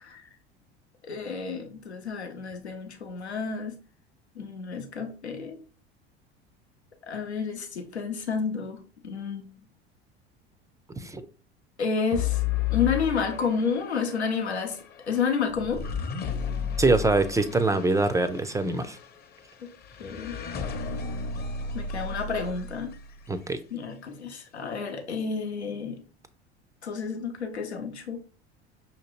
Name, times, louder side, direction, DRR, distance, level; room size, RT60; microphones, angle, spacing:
voice 1, 1.0-3.8 4.4-5.6 7.1-9.5 11.8-12.4 12.7-14.8 15.1-15.8 19.6-19.7 20.0-20.4 21.7-22.9 23.7-26.0 26.8-28.2, left 5 dB, 90° left, 0.7 m, -30 dB
sound 1, 12.1-23.4, left 7 dB, 30° left, 0.7 m, -33 dB
voice 2, 16.8-19.0 23.3-23.6, right 3 dB, 10° right, 0.4 m, -24 dB
6.0 x 2.9 x 3.0 m
figure-of-eight pair, 70°, 32 cm